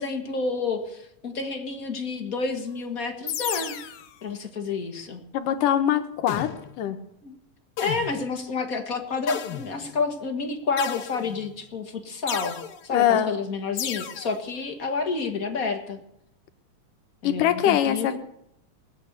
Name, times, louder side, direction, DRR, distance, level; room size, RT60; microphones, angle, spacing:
voice 1, 0.0-3.7 4.2-5.2 7.2-7.4 7.8-16.0 17.2-18.2, left 4 dB, 35° left, 4 dB, 1.6 m, -29 dB
sound 1, 3.3-4.1 6.3-6.8 7.8-8.3 9.3-10.0 10.8-11.5 12.3-12.8 13.8-14.4, left 9 dB, 65° left, 1.6 m, -33 dB
voice 2, 5.3-7.0 12.9-13.3 17.2-18.2, left 10 dB, 90° left, 8 dB, 2.7 m, -23 dB
20.0 x 8.3 x 8.1 m, 0.77 s
omnidirectional pair, 3.6 m